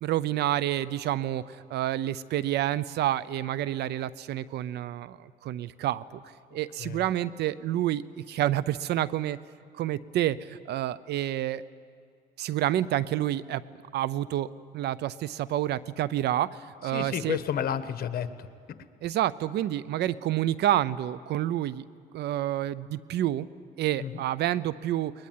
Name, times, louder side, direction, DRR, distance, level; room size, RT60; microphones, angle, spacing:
voice 1, 0.0-6.2 6.5-9.4 9.8-11.6 12.4-13.6 13.9-17.4 19.0-21.8 22.1-23.5 23.8-25.1, right 13 dB, 75° right, 18 dB, 0.7 m, -29 dB
voice 2, 16.9-18.5 24.0-24.2, left 9 dB, 60° left, 11 dB, 1.3 m, -31 dB
22.0 x 21.0 x 9.4 m, 2.2 s
cardioid pair, 95°, 17 cm